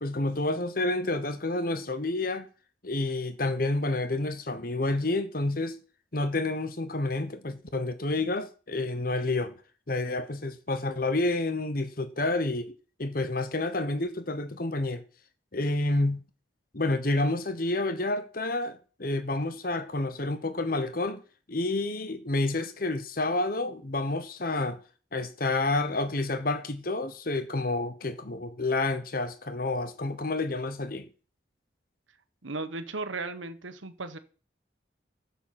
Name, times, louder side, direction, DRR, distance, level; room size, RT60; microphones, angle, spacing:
voice 1, 0.0-2.5 2.8-5.8 6.1-9.5 9.9-12.7 13.0-15.0 15.5-16.2 16.7-21.2 21.5-24.8 25.1-31.1, left 2 dB, 50° left, 1.1 m, -29 dB
voice 2, 32.4-34.2, right 3 dB, 90° right, 1.4 m, -36 dB
11.5 x 7.2 x 7.6 m
head